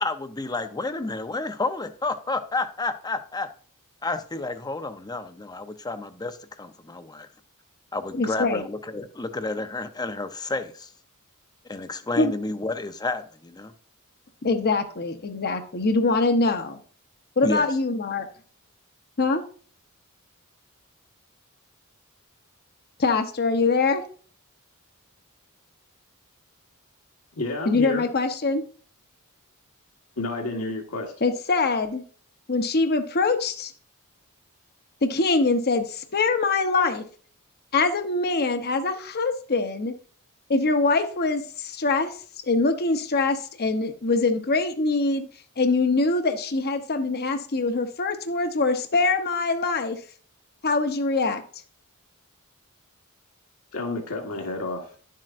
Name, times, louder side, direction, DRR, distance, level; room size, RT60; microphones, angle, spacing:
voice 1, 0.0-3.5 4.0-7.3 7.9-10.9 11.7-13.7 17.4-17.7, left 3 dB, 20° left, 0.6 m, -30 dB
voice 2, 8.1-8.6 12.2-12.3 14.4-16.8 17.4-18.3 19.2-19.4 23.0-24.0 27.7-28.6 31.2-32.0 32.5-33.7 35.0-37.0 37.7-39.9 40.5-42.2 42.5-45.3 45.6-50.0 50.6-51.4, left 3 dB, 45° left, 0.9 m, -23 dB
voice 3, 27.4-28.1 30.2-31.1 53.7-54.9, left 2 dB, 75° left, 1.5 m, -30 dB
11.0 x 7.5 x 2.5 m
head